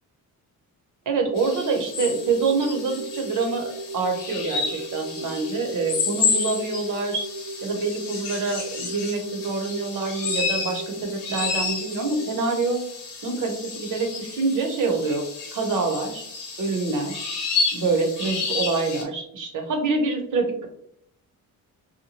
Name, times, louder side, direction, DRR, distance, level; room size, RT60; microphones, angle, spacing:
voice 1, 1.1-7.3 7.6-12.8 13.2-16.2 16.6-17.3 17.7-20.7, right 4 dB, 60° right, 4 dB, 0.8 m, -26 dB
sound 1, 1.4-19.0, left 4 dB, 70° left, 0.9 m, -31 dB
sound 2, 2.0-12.3, right 2 dB, 15° right, 0.5 m, -37 dB
2.8 x 2.1 x 2.8 m, 0.68 s
cardioid pair, 110°, 34 cm